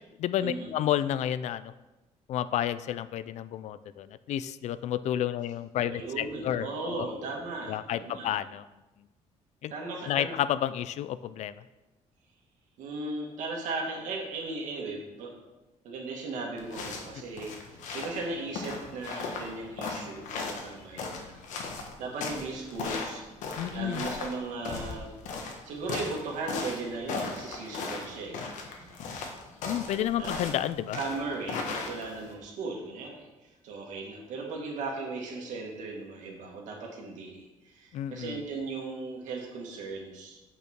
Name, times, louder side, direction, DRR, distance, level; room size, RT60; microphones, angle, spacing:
voice 1, 0.2-1.7 2.3-7.1 7.7-8.6 9.6-9.7 10.1-11.5 23.5-24.0 29.6-31.0 37.9-38.4, left 11 dB, 65° left, 15 dB, 0.4 m, -31 dB
voice 2, 5.8-8.3 9.7-10.4 12.8-15.3 15.8-21.7 22.0-23.2 23.7-25.1 25.7-28.4 28.8-29.0 29.9-30.5 30.9-40.4, right 3 dB, 85° right, 0 dB, 2.0 m, -37 dB
sound 1, 16.6-32.3, left 4 dB, 85° left, 1.3 m, -37 dB
8.6 x 5.4 x 4.5 m, 1.1 s
cardioid pair, 130°, 12 cm